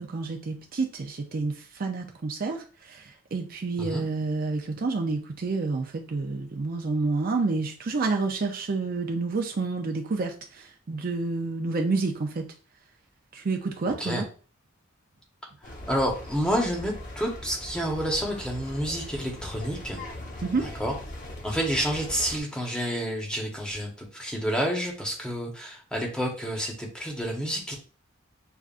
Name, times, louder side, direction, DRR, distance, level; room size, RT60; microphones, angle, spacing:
voice 1, 0.0-12.5 13.3-14.3 20.4-20.7, right 3 dB, 45° right, 3 dB, 0.5 m, -29 dB
sound 1, 15.6-22.4, left 1 dB, 40° left, 1.0 m, -40 dB
voice 2, 15.9-20.0 20.8-20.9 21.4-27.7, equal, 5° left, -1 dB, 1.0 m, -29 dB
6.8 x 2.3 x 2.5 m, 0.38 s
head